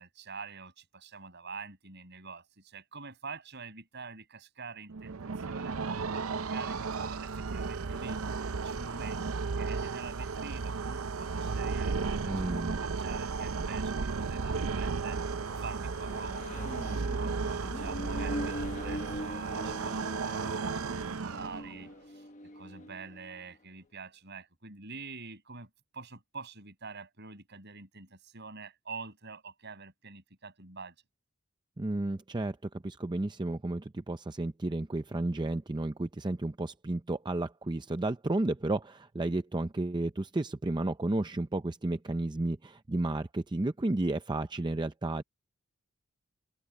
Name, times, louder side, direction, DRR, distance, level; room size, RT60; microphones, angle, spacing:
voice 1, 0.0-5.8 6.1-8.2 8.6-15.2 15.6-22.3 22.5-30.9, right 4 dB, 55° right, 6.9 m, -46 dB
sound 1, 4.9-21.9, right 4 dB, 85° right, 0.7 m, -34 dB
voice 2, 12.2-12.8 31.8-45.2, right 2 dB, 20° right, 0.5 m, -32 dB
Accelerating revving vroom, 13.2-23.6, left 1 dB, 35° left, 1.2 m, -43 dB
head